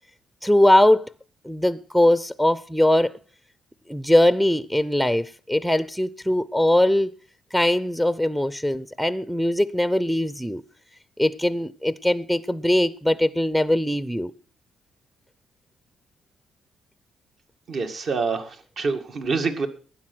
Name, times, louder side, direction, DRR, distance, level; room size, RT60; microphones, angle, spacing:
voice 1, 0.4-1.1 1.4-3.2 3.9-7.1 7.5-10.6 11.2-14.3, left 1 dB, ahead, 0.6 m, -21 dB
voice 2, 17.7-19.7, right 4 dB, 55° right, 2.0 m, -26 dB
12.5 x 9.5 x 6.1 m
cardioid pair, 90°, 0 cm